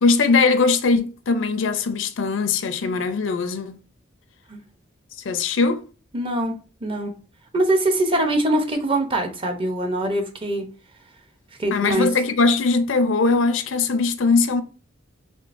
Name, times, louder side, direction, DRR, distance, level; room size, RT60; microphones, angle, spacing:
voice 1, 0.0-3.8 5.2-5.8 11.7-14.6, left 4 dB, 80° left, 0.5 m, -20 dB
voice 2, 6.1-7.1 7.5-10.7 11.6-12.1, right 1 dB, 30° right, 0.7 m, -23 dB
3.7 x 3.1 x 2.5 m
head